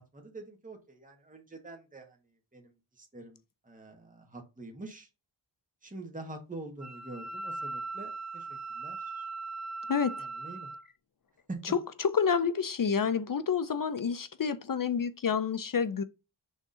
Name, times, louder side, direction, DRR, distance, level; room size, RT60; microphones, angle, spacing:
voice 1, 0.0-2.2 2.5-5.1 5.8-8.5 8.7-9.3 10.2-10.7 11.5-11.6, right 2 dB, 20° right, 1.7 m, -45 dB
Wind instrument woodwind instrument, 6.8-10.8, right 3 dB, 40° right, 1.0 m, -39 dB
voice 2, 9.9-10.3 12.0-16.0, left 6 dB, 50° left, 0.6 m, -29 dB
6.5 x 3.6 x 5.4 m
wide cardioid pair, 120°, 44 cm